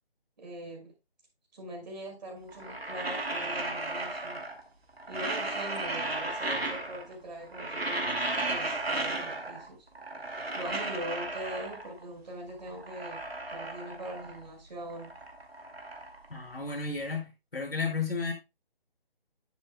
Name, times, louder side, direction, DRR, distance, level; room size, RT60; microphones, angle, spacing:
voice 1, 0.4-0.9 1.5-4.4 5.1-8.2 8.5-9.8 10.5-13.2 13.5-15.1, right 1 dB, 45° right, 5.9 m, -41 dB
sound 1, 2.5-4.7 5.0-7.1 7.4-9.7 9.9-12.0 12.5-14.5 14.8-17.0, right 2 dB, 85° right, 2.4 m, -35 dB
voice 2, 16.3-18.3, left 4 dB, 75° left, 5.1 m, -33 dB
11.5 x 9.5 x 2.2 m
figure-of-eight pair, 160°, 30 cm